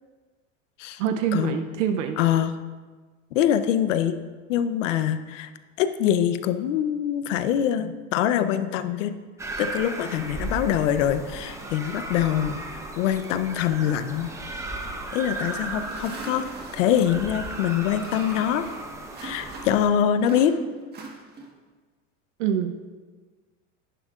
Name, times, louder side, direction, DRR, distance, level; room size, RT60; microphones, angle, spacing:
voice 1, 1.0-2.2 22.4-22.7, right 8 dB, 80° right, 7 dB, 0.7 m, -25 dB
voice 2, 2.2-2.5 3.3-4.2 4.5-5.5 5.8-9.1 9.6-12.6 13.0-14.3 15.1-18.6 19.2-20.5, left 10 dB, 75° left, 11 dB, 0.8 m, -24 dB
sound 1, 9.4-19.9, right 2 dB, 10° right, 0.8 m, -36 dB
sound 2, 15.2-19.9 20.2-21.7, right 3 dB, 25° right, 1.4 m, -43 dB
10.5 x 10.0 x 2.5 m, 1.4 s
supercardioid pair, 135°, 37 cm